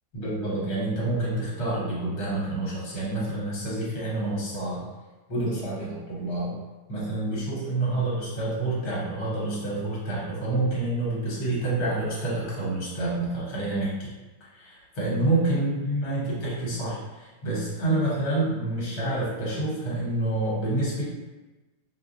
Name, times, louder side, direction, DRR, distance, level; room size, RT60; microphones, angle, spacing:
voice 1, 0.1-4.8 5.3-6.5 6.9-14.1 14.5-21.1, right 2 dB, 70° left, -6 dB, 1.5 m, -28 dB
3.9 x 2.1 x 2.5 m, 1.2 s
omnidirectional pair, 1.8 m